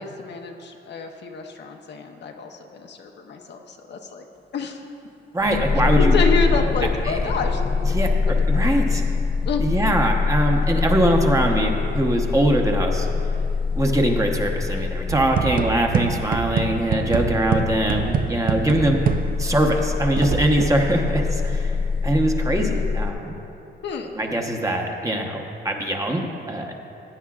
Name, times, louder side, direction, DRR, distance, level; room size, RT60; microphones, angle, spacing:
voice 1, 0.0-4.2 4.5-4.8 5.9-7.9 8.3-8.7 9.4-9.6 23.8-24.1, left 4 dB, 60° left, 3 dB, 0.8 m, -28 dB
voice 2, 5.3-6.2 7.0-7.2 7.9-8.1 8.5-9.0 9.6-13.1 13.8-19.0 19.4-21.8 22.0-23.3 24.2-26.7, right 1 dB, 15° right, 2 dB, 1.0 m, -22 dB
sound 1, 5.4-23.1, left 4 dB, 25° left, 0.5 m, -24 dB
sound 2, 15.1-19.6 20.2-20.9, right 6 dB, 45° right, 0.5 m, -25 dB
15.5 x 9.3 x 2.4 m, 2.8 s
cardioid pair, 90°, 20 cm